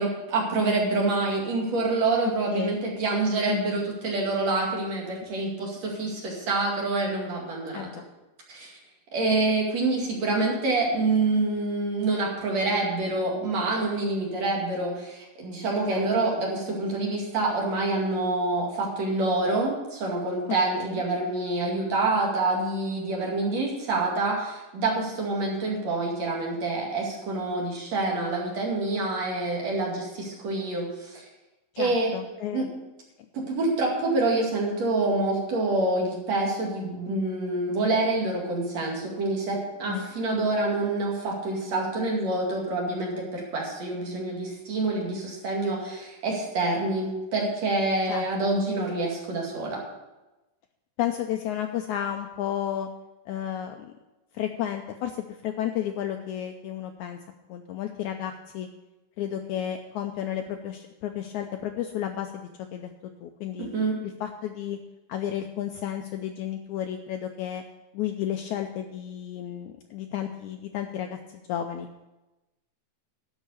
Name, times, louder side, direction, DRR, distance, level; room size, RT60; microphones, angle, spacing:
voice 1, 0.0-7.9 8.5-8.7 9.1-31.2 31.8-32.1 32.5-32.7 33.3-49.8 63.6-64.0, right 2 dB, 50° right, -2 dB, 3.3 m, -27 dB
voice 2, 2.2-2.8 3.5-3.7 7.7-8.0 15.9-16.1 20.8-21.0 31.8-32.7 39.9-40.2 48.1-48.3 51.0-52.9 53.3-53.9 54.3-57.2 57.5-58.7 59.2-62.9 63.2-63.7 64.0-64.8 65.1-67.6 67.9-71.9, left 10 dB, 90° left, 5 dB, 1.7 m, -32 dB
12.0 x 5.6 x 8.4 m, 1.0 s
omnidirectional pair, 4.1 m